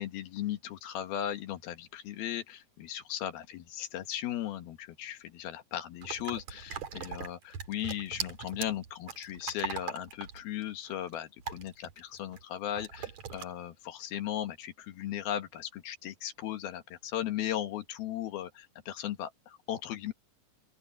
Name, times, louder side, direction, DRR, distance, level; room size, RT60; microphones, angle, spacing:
voice 1, 0.0-20.1, left 11 dB, 90° left, 3.5 m, -37 dB
sound 1, 6.0-12.4 12.8-13.4, right 7 dB, 50° right, 3.4 m, -40 dB
open air
omnidirectional pair, 4.2 m